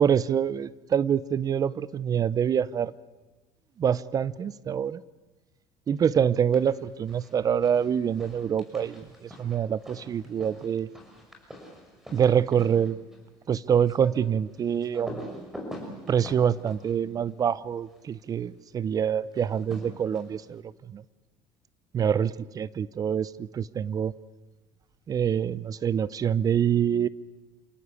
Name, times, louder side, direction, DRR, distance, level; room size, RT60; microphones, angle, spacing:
voice 1, 0.0-2.9 3.8-5.0 5.9-10.9 12.1-13.0 13.5-15.3 16.1-21.0 21.9-24.1 25.1-27.1, right 8 dB, 35° right, 19 dB, 0.7 m, -26 dB
sound 1, 6.2-6.8 7.1-18.1 19.3-20.5, equal, 5° right, 6.4 m, -45 dB
28.5 x 18.0 x 8.5 m, 1.2 s
cardioid pair, 110°, 10 cm